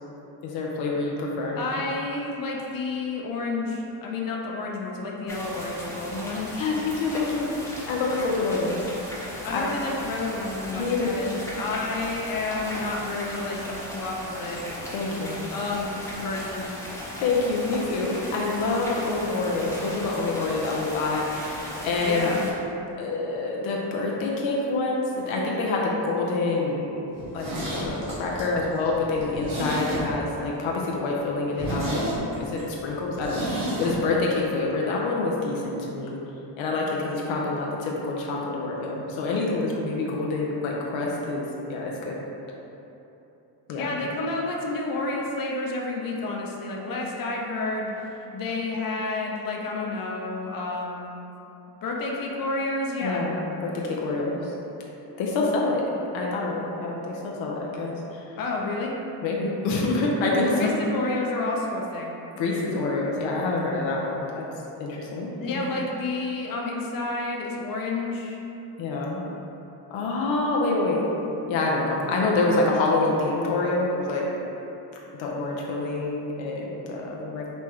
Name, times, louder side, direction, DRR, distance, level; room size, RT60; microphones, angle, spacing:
voice 1, 0.4-1.6 6.6-7.5 7.9-8.8 9.5-9.7 10.8-11.1 14.9-15.4 17.2-22.4 23.0-27.0 27.3-32.0 32.4-36.2 36.6-41.4 41.7-42.2 43.7-44.0 53.0-54.5 55.2-55.8 56.1-58.3 59.2-60.7 62.4-64.4 64.8-65.6 68.8-69.2 69.9-71.0 71.5-74.3 75.2-77.5, left 3 dB, 85° left, -3 dB, 0.7 m, -27 dB
voice 2, 1.6-6.6 9.4-14.6 15.5-15.9 16.2-16.7 22.0-22.5 43.8-51.2 51.8-53.2 58.4-58.9 60.4-62.1 65.4-68.4, left 2 dB, 50° left, -1 dB, 0.7 m, -30 dB
sound 1, 5.3-22.5, equal, 5° left, 0.9 m, -37 dB
Zipper (clothing), 27.1-30.4 30.7-30.8 31.2-31.3 31.5-34.0 34.2-34.3, equal, 85° right, 1.3 m, -31 dB
5.4 x 2.2 x 3.1 m, 3.0 s
cardioid pair, 75°, 45 cm